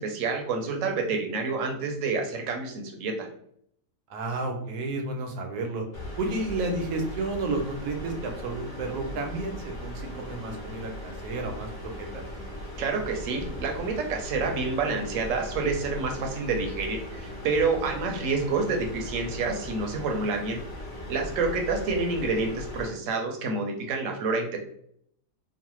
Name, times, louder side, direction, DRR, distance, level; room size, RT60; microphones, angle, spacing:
voice 1, 0.0-3.3 12.8-20.6 21.1-24.6, right 4 dB, 65° right, 3 dB, 0.9 m, -28 dB
voice 2, 4.1-5.8 6.2-12.3, right 2 dB, 85° right, 3 dB, 1.2 m, -32 dB
sound 1, 5.9-22.9, left 1 dB, 35° left, 1.3 m, -39 dB
3.1 x 2.1 x 3.0 m, 0.69 s
omnidirectional pair, 1.6 m